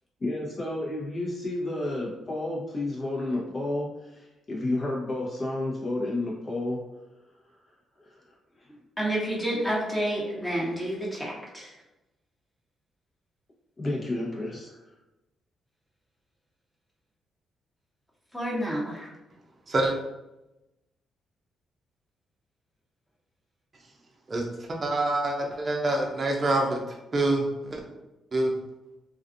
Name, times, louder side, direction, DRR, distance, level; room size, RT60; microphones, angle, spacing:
voice 1, 0.2-6.8 8.0-8.2 8.6-8.7 13.8-14.8, left 2 dB, 45° left, -3 dB, 0.9 m, -31 dB
voice 2, 9.0-11.7 18.3-19.1, right 1 dB, 10° left, -5 dB, 1.1 m, -29 dB
voice 3, 24.3-26.8 27.1-27.8 28.3-28.5, right 2 dB, 40° right, 0 dB, 0.5 m, -26 dB
2.5 x 2.4 x 2.5 m, 0.97 s
supercardioid pair, 60°, 0 cm